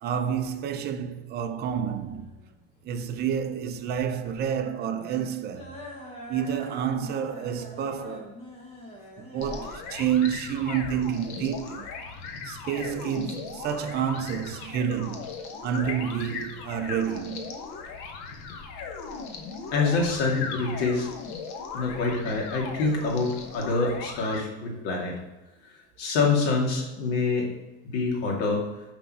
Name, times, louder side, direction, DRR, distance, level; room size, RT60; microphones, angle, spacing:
voice 1, 0.0-2.3 2.8-5.8 6.3-8.3 9.2-11.9 12.4-15.3 15.6-17.5, right 8 dB, 30° right, 0.5 m, -29 dB
sound 1, 1.7-11.8, left 1 dB, 15° left, 1.4 m, -45 dB
sound 2, 9.4-24.4, left 5 dB, 55° left, 1.1 m, -38 dB
voice 2, 19.7-21.1 21.7-25.2 26.0-27.5 27.9-28.6, left 3 dB, 80° left, 2.4 m, -26 dB
6.0 x 5.3 x 6.1 m
cardioid pair, 160°, 35 cm